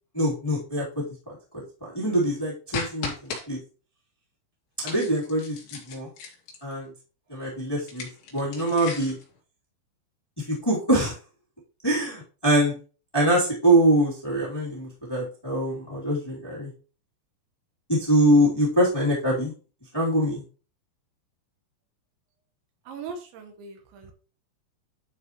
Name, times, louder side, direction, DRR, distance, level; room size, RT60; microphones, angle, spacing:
voice 1, 0.1-1.4 1.8-3.6 4.8-6.1 6.6-6.9 7.3-8.1 8.3-9.1 10.4-11.2 11.8-12.7 13.1-16.7 17.9-19.5 19.9-20.4, right 1 dB, 5° left, -5 dB, 2.0 m, -24 dB
sound 1, 2.7-3.4 4.8-6.7 7.8-9.2, left 5 dB, 70° left, 4.3 m, -36 dB
voice 2, 22.9-24.1, right 5 dB, 75° right, 5 dB, 3.5 m, -39 dB
11.5 x 5.1 x 3.1 m, 0.36 s
omnidirectional pair, 5.3 m